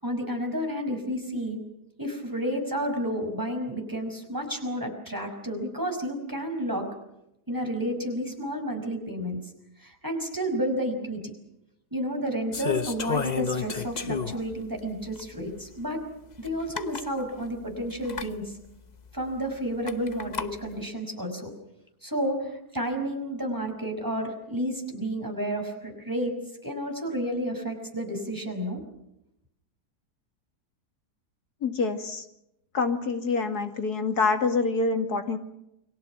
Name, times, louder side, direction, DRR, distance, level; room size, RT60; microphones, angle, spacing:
voice 1, 0.0-1.6 2.0-6.9 7.5-9.4 9.8-11.3 11.9-16.0 16.4-18.5 19.1-21.5 22.0-28.8, equal, 10° right, 3 dB, 5.7 m, -31 dB
sound 1, 12.5-14.5 15.2-15.3 16.4-16.5 16.7-17.1 18.0-18.3 19.9-20.5, left 6 dB, 30° left, 0.9 m, -30 dB
voice 2, 31.6-32.2 32.7-35.4, left 4 dB, 75° left, 6 dB, 2.7 m, -26 dB
29.5 x 23.0 x 6.1 m, 0.84 s
omnidirectional pair, 1.7 m